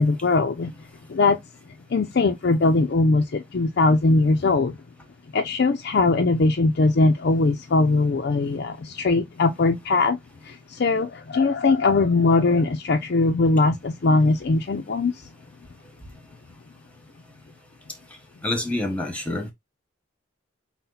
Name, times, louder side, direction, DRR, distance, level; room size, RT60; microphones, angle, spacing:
voice 1, 0.0-1.4 1.9-4.8 5.3-15.3, left 3 dB, 50° left, 0.5 m, -21 dB
voice 2, 18.4-19.5, left 1 dB, 5° left, 1.0 m, -27 dB
5.6 x 2.2 x 3.8 m
head